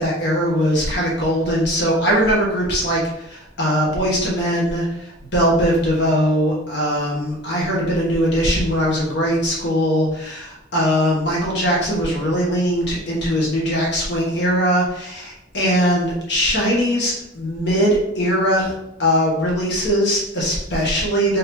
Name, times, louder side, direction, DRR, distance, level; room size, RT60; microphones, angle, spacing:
voice 1, 0.0-4.9 5.3-18.7 19.0-21.4, equal, 65° left, -3 dB, 1.2 m, -20 dB
3.6 x 3.6 x 3.0 m, 0.82 s
head